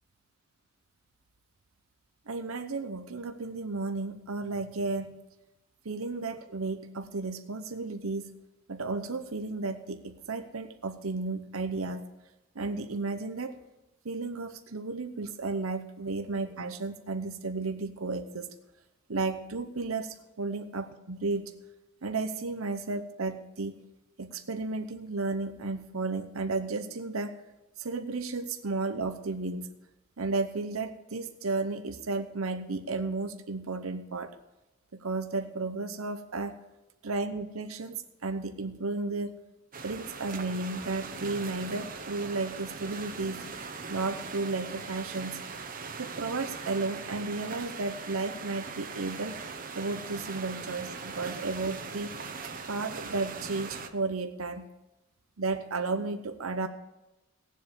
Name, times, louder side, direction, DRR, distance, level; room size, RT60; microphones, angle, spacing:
voice 1, 2.3-5.2 5.8-8.3 8.7-12.0 12.5-13.6 14.0-18.5 19.1-21.5 22.0-23.8 24.2-27.4 27.8-29.7 30.2-34.3 34.9-36.6 37.0-39.4 39.8-43.5 43.9-45.4 46.0-49.4 49.7-52.2 52.7-54.7 55.4-56.7, right 3 dB, 85° right, 8 dB, 0.9 m, -33 dB
sound 1, 39.7-53.9, right 4 dB, 40° right, 1.0 m, -40 dB
18.5 x 7.6 x 6.8 m, 1.0 s
head